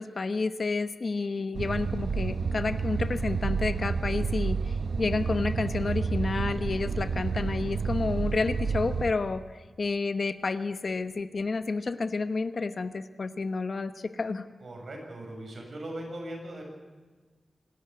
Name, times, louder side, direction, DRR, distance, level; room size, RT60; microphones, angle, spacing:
voice 1, 0.0-14.5, left 3 dB, 50° left, 11 dB, 1.0 m, -30 dB
sound 1, 1.5-9.1, right 5 dB, 75° right, 1.0 m, -30 dB
voice 2, 14.6-16.6, right 1 dB, 55° right, 1 dB, 7.3 m, -39 dB
25.5 x 13.5 x 9.5 m, 1.4 s
wide cardioid pair, 125°, 0 cm